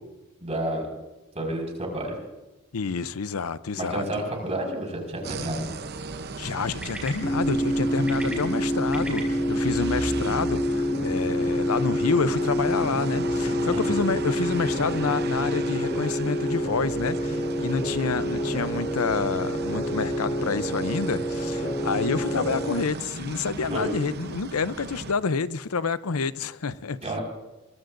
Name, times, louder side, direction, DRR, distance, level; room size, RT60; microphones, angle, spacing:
voice 1, 0.4-0.9 1.4-2.2 3.7-5.7 13.7-14.0 23.7-24.0 27.0-27.2, right 1 dB, 30° right, 5.2 m, -30 dB
voice 2, 2.7-4.0 6.4-27.0, left 5 dB, 85° left, 0.7 m, -28 dB
sound 1, 4.0-15.6, right 1 dB, 5° right, 4.6 m, -47 dB
sound 2, 5.2-25.1, right 3 dB, 50° right, 0.8 m, -37 dB
sound 3, 7.2-22.8, equal, 30° left, 1.6 m, -27 dB
23.5 x 22.5 x 2.6 m
head